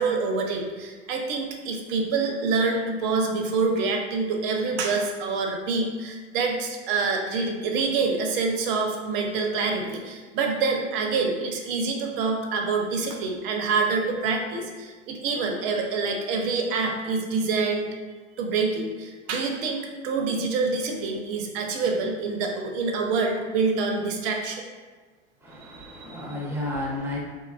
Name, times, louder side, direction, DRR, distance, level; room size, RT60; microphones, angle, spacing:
voice 1, 0.0-17.9 18.4-24.6 25.6-26.3, right 4 dB, 50° right, 3 dB, 0.5 m, -26 dB
voice 2, 25.4-27.2, left 1 dB, 5° right, -3 dB, 0.6 m, -32 dB
2.9 x 2.3 x 2.2 m, 1.4 s
figure-of-eight pair, 85°, 35 cm